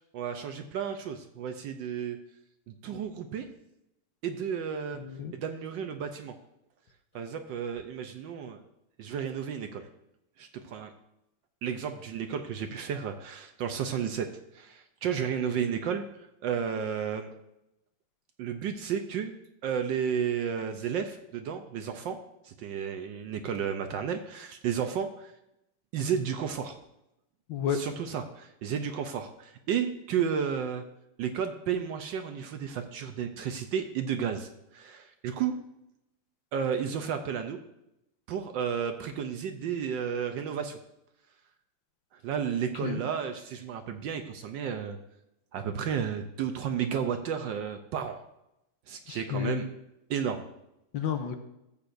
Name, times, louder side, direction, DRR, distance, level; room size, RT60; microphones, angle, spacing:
voice 1, 0.1-2.2 2.7-3.5 4.2-5.0 5.3-6.3 7.1-8.6 9.0-9.9 10.4-10.9 11.6-14.3 14.5-16.0 16.4-17.3 18.4-19.3 19.6-22.2 22.4-25.3 25.9-26.8 27.7-30.8 31.2-35.6 36.5-37.6 38.3-40.8 42.2-45.0 45.5-48.2 48.9-49.7 50.1-50.5, right 7 dB, 70° right, 7 dB, 1.2 m, -32 dB
voice 2, 4.9-5.3 27.5-27.8 42.8-43.0 49.1-49.7 50.9-51.4, left 8 dB, 70° left, 7 dB, 1.4 m, -31 dB
14.0 x 8.3 x 2.6 m, 0.86 s
omnidirectional pair, 2.4 m